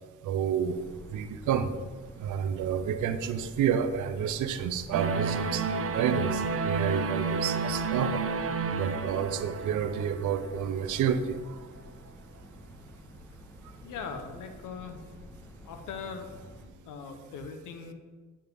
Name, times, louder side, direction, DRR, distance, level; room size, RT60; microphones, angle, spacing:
voice 1, 0.2-1.7 2.2-8.2 8.7-11.8, right 8 dB, 80° right, 11 dB, 0.8 m, -30 dB
sound 1, 0.7-16.7, left 1 dB, 5° left, 1.5 m, -49 dB
sound 2, 4.9-11.0, right 4 dB, 50° right, 0.8 m, -31 dB
voice 2, 13.8-15.0 15.7-16.3 16.8-17.9, left 6 dB, 85° left, 6 dB, 1.1 m, -40 dB
9.4 x 8.6 x 3.6 m, 1.4 s
cardioid pair, 90°, 30 cm